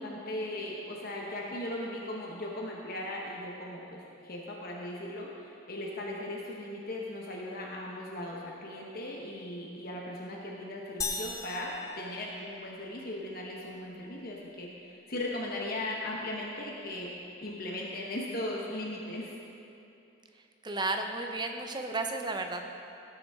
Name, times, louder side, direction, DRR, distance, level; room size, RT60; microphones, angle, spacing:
voice 1, 0.0-19.3, left 1 dB, 45° left, -2 dB, 1.0 m, -38 dB
sound 1, 11.0-12.9, left 4 dB, 15° left, 0.7 m, -38 dB
voice 2, 20.6-22.6, right 2 dB, 20° right, 4 dB, 0.6 m, -33 dB
16.5 x 7.0 x 3.6 m, 2.8 s
head